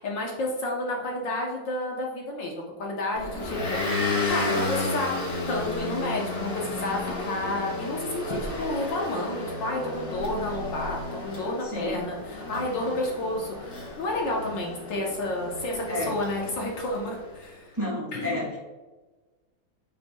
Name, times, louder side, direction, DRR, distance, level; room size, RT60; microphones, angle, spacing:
voice 1, 0.0-5.1 5.5-17.7 18.1-18.5, left 2 dB, 65° left, -1 dB, 1.6 m, -31 dB
Motor vehicle (road) / Engine, 3.1-17.4, left 2 dB, 35° left, 1.2 m, -32 dB
voice 2, 11.6-12.0 15.9-16.2 17.7-18.6, left 1 dB, 10° right, -4 dB, 1.7 m, -31 dB
8.4 x 6.0 x 2.3 m, 1.2 s
omnidirectional pair, 2.3 m